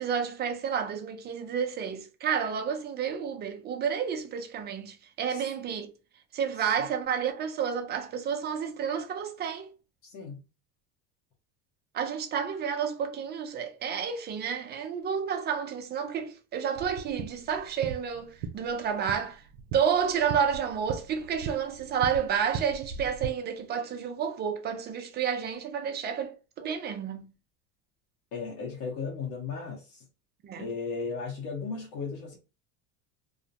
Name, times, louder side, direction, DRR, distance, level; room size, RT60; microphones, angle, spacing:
voice 1, 0.0-5.9 6.3-9.7 11.9-19.4 19.7-27.3 30.4-30.6, right 7 dB, 25° right, 0.5 m, -30 dB
voice 2, 10.0-10.4 28.3-30.0 30.6-32.4, left 4 dB, 75° left, 0.9 m, -36 dB
sound 1, 16.8-23.3, right 5 dB, 90° right, 0.5 m, -39 dB
2.4 x 2.1 x 2.7 m
cardioid pair, 140°, 38 cm